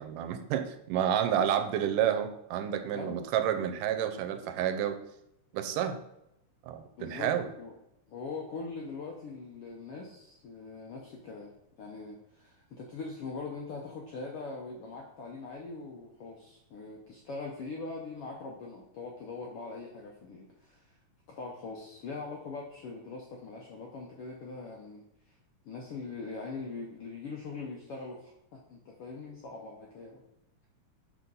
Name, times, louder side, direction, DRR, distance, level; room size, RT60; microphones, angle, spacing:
voice 1, 0.0-5.0 5.5-6.0 6.7-7.5, right 9 dB, 85° right, 9 dB, 2.3 m, -30 dB
voice 2, 2.9-3.3 7.0-7.7 8.1-21.0 21.3-25.4 25.6-30.2, left 3 dB, 75° left, -1 dB, 1.3 m, -42 dB
6.1 x 4.4 x 5.4 m, 0.83 s
omnidirectional pair, 3.7 m